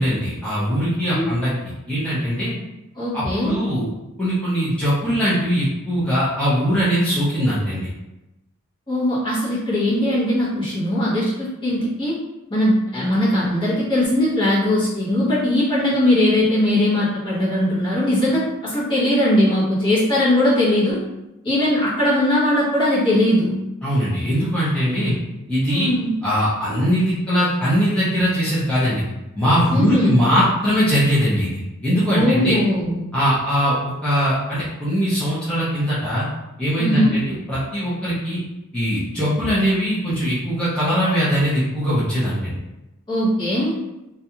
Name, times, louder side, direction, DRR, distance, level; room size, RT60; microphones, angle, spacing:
voice 1, 0.0-1.5 1.9-2.5 3.1-3.9 4.2-7.9 23.8-25.1 25.5-25.9 26.2-29.0 29.4-32.6 33.1-36.3 36.6-38.4 38.7-42.6, equal, 5° left, -12 dB, 0.6 m, -21 dB
voice 2, 3.0-3.6 8.9-12.2 12.5-21.0 21.4-23.5 25.7-26.2 29.7-30.2 32.1-33.0 36.8-37.2 43.1-43.8, left 1 dB, 20° left, -9 dB, 1.0 m, -20 dB
2.5 x 2.3 x 2.8 m, 0.96 s
head